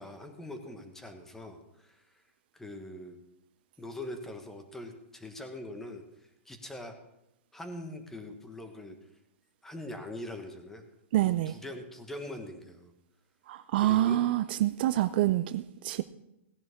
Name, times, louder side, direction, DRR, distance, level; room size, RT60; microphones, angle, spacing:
voice 1, 0.0-2.2 2.5-3.2 3.8-6.9 7.5-9.0 9.6-10.8 11.2-12.9 13.8-14.2, left 1 dB, 5° left, 1.3 m, -43 dB
voice 2, 11.1-11.5 13.5-16.0, right 14 dB, 45° right, 0.4 m, -27 dB
17.0 x 10.5 x 3.6 m
hypercardioid pair, 155°, 7 cm